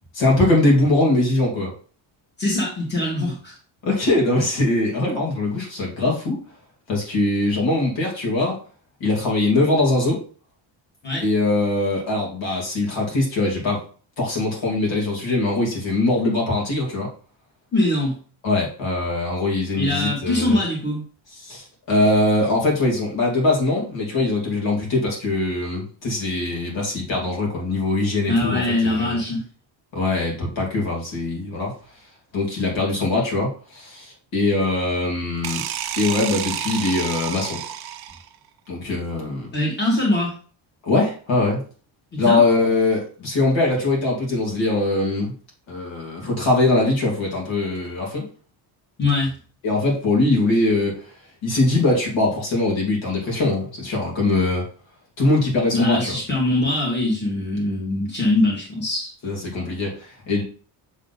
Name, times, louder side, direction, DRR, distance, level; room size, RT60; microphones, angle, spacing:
voice 1, 0.1-1.7 3.8-6.4 6.9-8.6 9.0-10.2 11.2-13.8 14.2-17.1 18.4-20.6 21.4-29.2 29.9-31.7 32.3-35.6 36.0-37.6 38.7-39.5 40.8-41.6 42.2-45.3 45.7-48.3 49.6-51.1 51.4-54.6 55.2-56.1 59.2-60.4, left 2 dB, 60° left, -2 dB, 2.5 m, -22 dB
voice 2, 2.4-3.5 11.0-11.3 17.7-18.2 19.7-21.0 28.3-29.5 39.5-40.3 42.3-42.4 46.2-46.3 49.0-49.4 55.7-59.1, left 2 dB, 20° left, -3 dB, 2.1 m, -22 dB
sound 1, 35.4-38.4, right 10 dB, 50° right, 0.6 m, -30 dB
6.5 x 3.7 x 4.1 m, 0.41 s
cardioid pair, 165°, 50 cm